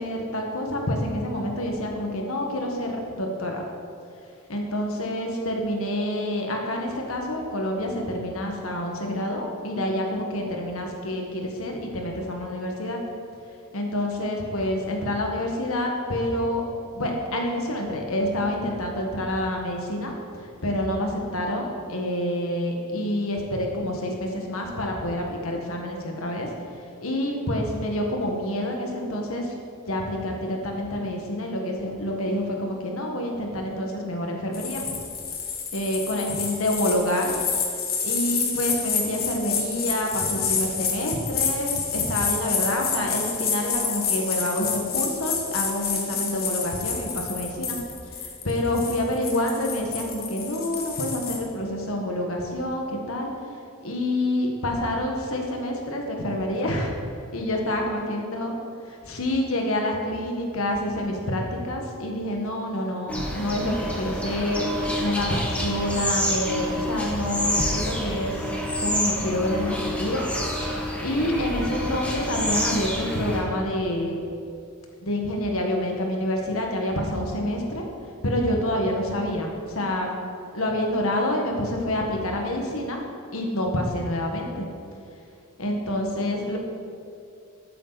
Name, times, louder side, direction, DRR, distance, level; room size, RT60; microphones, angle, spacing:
voice 1, 0.0-3.6 4.5-13.0 13.7-16.6 16.9-20.1 20.6-26.5 27.0-29.5 29.9-34.9 35.7-37.3 38.0-53.3 53.8-57.0 57.3-58.5 59.0-68.5 68.8-70.2 70.5-70.7 71.0-74.2 75.0-77.9 78.2-80.1 80.5-83.0 83.3-84.7 85.6-86.6, left 1 dB, 65° left, 1 dB, 1.7 m, -27 dB
sound 1, 34.5-51.4, left 6 dB, 45° left, 1.4 m, -29 dB
sound 2, 63.1-73.4, equal, 5° left, 1.7 m, -28 dB
13.5 x 8.7 x 4.2 m, 2.4 s
head